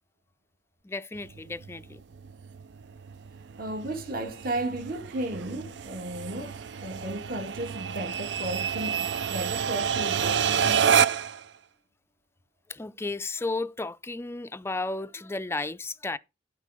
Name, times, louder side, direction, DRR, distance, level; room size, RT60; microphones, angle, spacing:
voice 1, 0.8-2.0 12.7-16.2, left 3 dB, 15° left, 0.4 m, -33 dB
sound 1, 1.2-11.4, right 7 dB, 70° right, 0.5 m, -29 dB
voice 2, 3.6-10.4, right 1 dB, 55° right, 2.1 m, -34 dB
12.0 x 4.6 x 4.8 m
head